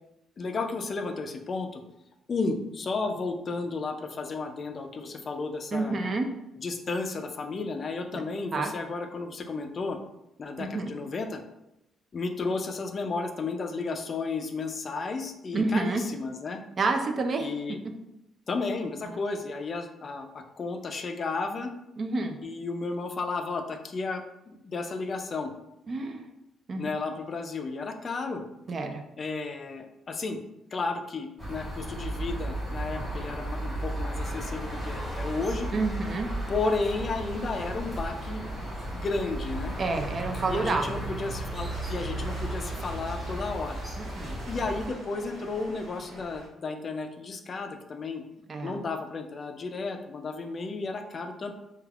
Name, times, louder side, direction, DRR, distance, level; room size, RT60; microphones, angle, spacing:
voice 1, 0.4-1.8 2.3-6.0 6.6-10.0 10.4-11.4 12.1-16.6 17.4-17.8 18.5-21.7 22.4-25.5 26.8-28.4 29.2-30.4 30.7-35.7 36.5-38.4 38.9-39.7 40.5-43.8 44.5-48.2 48.6-51.5, left 3 dB, 45° left, 5 dB, 0.3 m, -33 dB
voice 2, 5.7-6.3 8.1-8.2 8.5-8.7 10.6-10.9 15.5-16.0 16.8-17.5 19.1-19.2 22.0-22.4 25.9-26.3 26.7-26.9 28.7-29.0 35.7-36.3 39.8-40.9 44.0-44.3 48.5-48.8, right 3 dB, 45° right, 5 dB, 0.4 m, -29 dB
sound 1, 31.4-44.9, right 1 dB, ahead, 1.2 m, -34 dB
sound 2, 36.9-46.5, right 1 dB, 65° right, 0.8 m, -46 dB
3.2 x 2.3 x 2.3 m, 0.88 s
cardioid pair, 90°, 0 cm